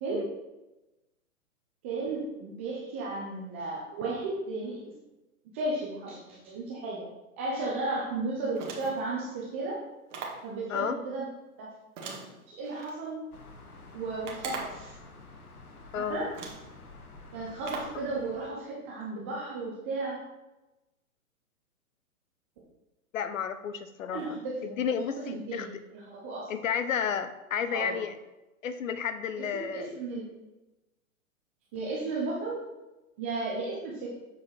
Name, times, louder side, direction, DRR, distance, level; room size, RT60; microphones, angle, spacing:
voice 1, 0.0-0.4 1.8-4.8 5.5-7.1 7.4-9.8 10.4-11.2 11.6-11.7 12.5-13.2 13.9-15.0 16.0-16.4 17.3-20.2 24.1-24.8 25.3-25.7 25.9-26.5 27.7-28.0 29.4-30.3 31.7-32.6 33.2-34.1, right 3 dB, 10° right, -4 dB, 0.3 m, -34 dB
sound 1, 8.5-9.1 10.1-10.5 12.0-13.0 14.2-14.9 15.8-15.9 16.3-16.7 17.6-18.0, right 4 dB, 55° right, 1.8 m, -40 dB
sound 2, 13.3-18.5, left 3 dB, 80° left, 1.3 m, -50 dB
voice 2, 15.9-16.2 23.1-25.8 26.5-28.2 28.6-30.0, left 7 dB, 65° left, 10 dB, 0.8 m, -32 dB
7.3 x 4.6 x 4.4 m, 1.0 s
hypercardioid pair, 125°, 43 cm